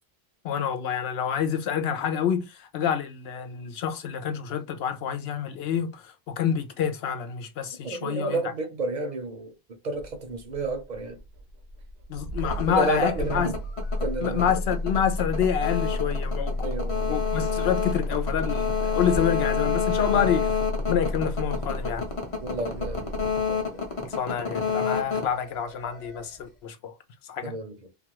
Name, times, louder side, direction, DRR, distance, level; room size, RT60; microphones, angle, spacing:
voice 1, 0.4-8.4 12.1-13.5 14.2-20.5 20.9-22.1 24.0-26.9 27.3-27.5, left 8 dB, 90° left, 0.8 m, -28 dB
voice 2, 7.8-9.5 9.8-11.2 12.4-13.6 14.0-14.5 16.6-17.2 20.1-20.2 22.4-23.2 23.5-23.8 27.4-27.9, right 2 dB, 50° right, 0.6 m, -31 dB
Engine starting, 9.9-24.1, left 1 dB, 80° right, 0.8 m, -32 dB
sound 1, 12.4-26.2, left 6 dB, 40° left, 0.7 m, -29 dB
2.3 x 2.3 x 2.9 m
omnidirectional pair, 1.0 m